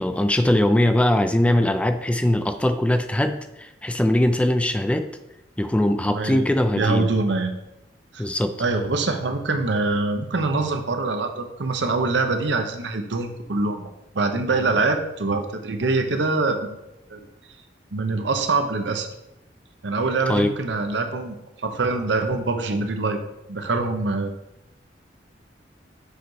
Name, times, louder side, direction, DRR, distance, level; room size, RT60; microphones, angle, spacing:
voice 1, 0.0-5.0 5.6-7.1 8.2-8.5 20.3-20.5, left 1 dB, 5° left, 8 dB, 0.3 m, -21 dB
voice 2, 6.1-6.5 6.8-7.5 8.1-8.2 8.6-16.8 17.1-17.2 17.9-19.1 19.8-23.2 23.5-24.3, right 3 dB, 80° right, 6 dB, 0.8 m, -24 dB
6.7 x 4.8 x 4.0 m, 0.91 s
head